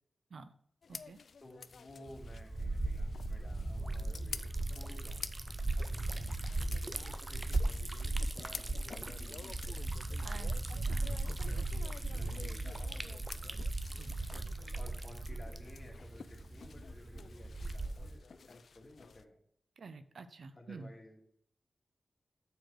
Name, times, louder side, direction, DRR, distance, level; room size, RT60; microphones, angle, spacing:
sound 1, 0.8-19.2, left 5 dB, 75° left, 0.4 m, -51 dB
voice 1, 0.9-1.2 10.2-12.4 13.5-13.7 13.9-14.1 19.8-20.9, right 4 dB, 75° right, 12 dB, 0.5 m, -51 dB
voice 2, 1.4-5.2 5.6-9.8 12.1-13.1 14.8-19.4 20.5-21.2, left 1 dB, 30° left, 1 dB, 2.2 m, -55 dB
Liquid, 2.1-18.2, right 2 dB, 30° right, 0.7 m, -37 dB
6.6 x 4.7 x 6.3 m, 0.69 s
cardioid pair, 55°, 0 cm